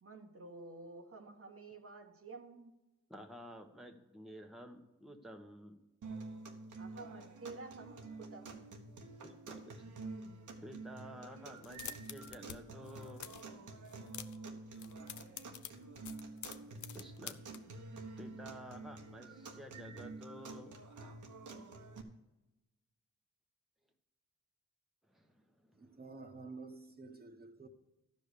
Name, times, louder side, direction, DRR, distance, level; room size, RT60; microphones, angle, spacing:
voice 1, 0.0-2.8 6.7-9.2, right 3 dB, 45° right, 1.2 m, -51 dB
voice 2, 3.1-5.8 9.2-9.8 10.6-13.4 16.9-17.4 18.2-20.8 25.1-26.0, equal, ahead, 1.2 m, -52 dB
sound 1, 6.0-22.0, right 3 dB, 70° right, 1.3 m, -49 dB
sound 2, 11.6-12.6 12.8-13.5 13.8-14.5 14.7-17.6, left 10 dB, 70° left, 0.6 m, -47 dB
voice 3, 25.8-27.7, right 3 dB, 30° right, 1.3 m, -50 dB
12.5 x 5.2 x 6.7 m
cardioid pair, 50°, 31 cm